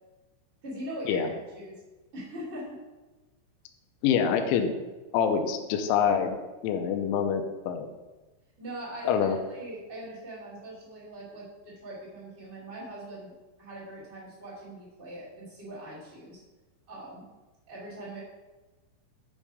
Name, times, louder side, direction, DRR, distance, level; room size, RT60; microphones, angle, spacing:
voice 1, 0.6-1.8 2.1-2.8 8.6-16.4 16.9-17.2 17.7-18.2, right 1 dB, 35° right, -8 dB, 1.0 m, -41 dB
voice 2, 4.0-4.7 5.1-6.4 6.6-7.9 9.1-9.4, left 7 dB, 80° left, 6 dB, 2.9 m, -25 dB
10.0 x 3.6 x 4.9 m, 1.2 s
omnidirectional pair, 5.8 m